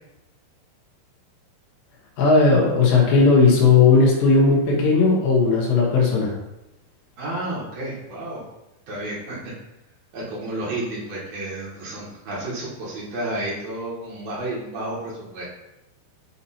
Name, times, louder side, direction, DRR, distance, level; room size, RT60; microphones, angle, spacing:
voice 1, 2.2-6.3, left 4 dB, 75° left, -3 dB, 3.4 m, -16 dB
voice 2, 7.2-8.4 8.9-9.5 10.1-15.5, right 1 dB, 60° right, -6 dB, 2.9 m, -31 dB
8.6 x 2.9 x 4.2 m, 0.92 s
omnidirectional pair, 5.2 m